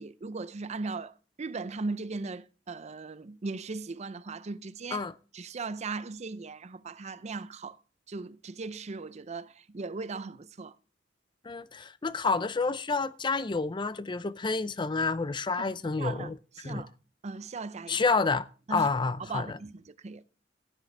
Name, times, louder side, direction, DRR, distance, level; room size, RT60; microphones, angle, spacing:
voice 1, 0.0-5.0 5.3-7.8 8.1-10.8 15.6-16.9 17.2-18.0 18.7-18.9 19.2-20.2, right 3 dB, 35° right, 0.5 m, -38 dB
voice 2, 11.5-16.3 16.6-16.8 17.9-19.5, left 4 dB, 25° left, 0.5 m, -29 dB
15.0 x 9.8 x 3.3 m
head